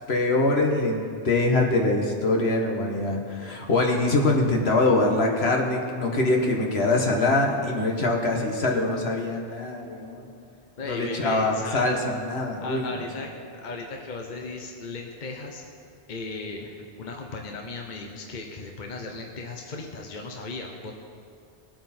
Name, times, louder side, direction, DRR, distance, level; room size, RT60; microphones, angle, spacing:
voice 1, 0.0-10.3 10.9-12.9, left 2 dB, 70° left, 1 dB, 1.7 m, -24 dB
voice 2, 10.8-11.9 12.6-13.3 13.6-15.6 16.1-20.9, left 3 dB, 45° left, 1 dB, 1.1 m, -36 dB
20.0 x 7.9 x 4.3 m, 2.3 s
omnidirectional pair, 1.1 m